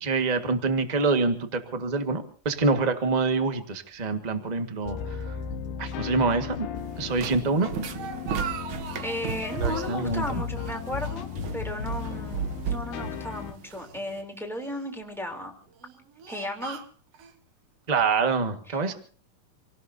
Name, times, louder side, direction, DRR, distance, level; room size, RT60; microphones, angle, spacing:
voice 1, 0.0-5.3 5.8-6.7 7.0-7.9 9.6-10.2 17.9-18.9, right 4 dB, 40° right, 7 dB, 0.6 m, -26 dB
sound 1, 4.8-13.5, left 7 dB, 80° left, 2.8 m, -35 dB
sound 2, 6.8-14.2, right 6 dB, 75° right, 1.2 m, -35 dB
Speech, 7.4-9.3 9.6-10.2 10.6-11.7 11.9-12.1 12.9-13.9 14.6-15.0 15.7-17.4, right 7 dB, 60° right, 1.9 m, -40 dB
voice 2, 9.0-15.5 16.3-16.8 18.7-18.8, left 1 dB, ahead, 2 dB, 3.0 m, -35 dB
28.0 x 18.5 x 2.8 m, 0.44 s
omnidirectional pair, 4.0 m